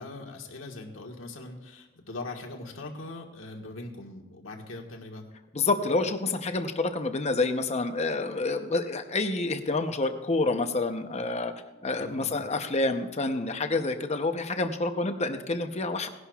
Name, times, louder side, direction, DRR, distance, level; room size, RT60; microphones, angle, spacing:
voice 1, 0.0-5.2 12.0-12.4, left 2 dB, 75° left, 1 dB, 1.6 m, -41 dB
voice 2, 5.5-11.5 11.8-16.1, left 3 dB, 35° left, 7 dB, 0.8 m, -28 dB
18.5 x 11.0 x 2.4 m, 1.1 s
head